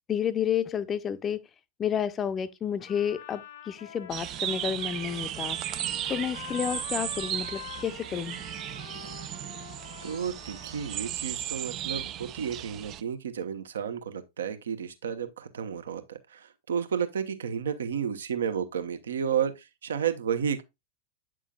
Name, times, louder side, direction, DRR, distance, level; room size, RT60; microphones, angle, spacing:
voice 1, 0.1-1.4 1.8-5.6 6.1-8.4, left 8 dB, 25° left, 0.6 m, -30 dB
Trumpet, 2.8-11.3, left 9 dB, 60° left, 0.7 m, -46 dB
sound 1, 4.1-13.0, right 12 dB, 35° right, 0.4 m, -35 dB
voice 2, 10.0-20.6, right 7 dB, 65° right, 1.0 m, -32 dB
9.0 x 6.1 x 2.3 m
figure-of-eight pair, 90°, 0 cm